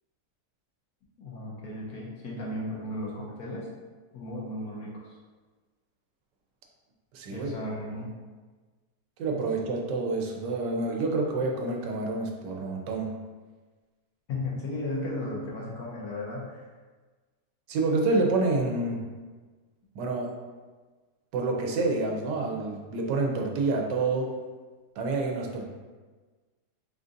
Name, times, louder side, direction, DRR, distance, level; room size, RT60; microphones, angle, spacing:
voice 1, 1.2-3.7 4.1-5.2 7.3-8.1 14.3-16.7, left 1 dB, 65° left, -4 dB, 1.3 m, -35 dB
voice 2, 7.1-7.5 9.2-13.1 17.7-19.0 19.9-20.3 21.3-24.3 25.0-25.7, right 3 dB, 85° right, 1 dB, 1.3 m, -28 dB
3.9 x 3.7 x 2.5 m, 1.3 s
omnidirectional pair, 1.8 m